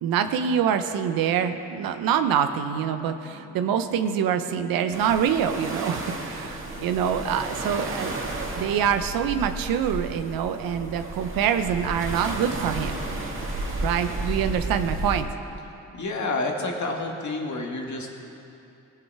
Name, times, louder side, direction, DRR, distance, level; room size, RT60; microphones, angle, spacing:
voice 1, 0.0-8.2 8.5-13.0 13.8-15.3, right 8 dB, 80° right, 9 dB, 0.7 m, -25 dB
sound 1, 1.6-13.6, left 1 dB, 30° left, 2.2 m, -48 dB
sound 2, 4.9-15.2, right 2 dB, 35° right, 2.1 m, -32 dB
voice 2, 15.9-18.1, left 2 dB, 55° left, 1 dB, 1.8 m, -29 dB
18.0 x 7.0 x 4.7 m, 2.8 s
supercardioid pair, 45°, 35 cm